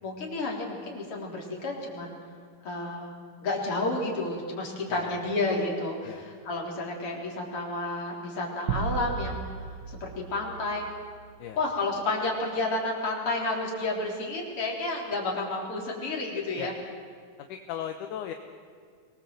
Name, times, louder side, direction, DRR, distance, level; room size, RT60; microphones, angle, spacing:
voice 1, 0.0-2.2 2.6-3.1 3.4-10.9 11.6-16.7, left 2 dB, 45° left, -1 dB, 4.6 m, -31 dB
voice 2, 4.9-5.3 6.0-6.2 11.4-11.6 16.6-16.7 17.4-18.3, left 10 dB, 75° left, 6 dB, 2.4 m, -37 dB
sound 1, 8.7-11.3, right 6 dB, 90° right, 1.1 m, -35 dB
24.0 x 19.5 x 7.9 m, 2.1 s
omnidirectional pair, 3.8 m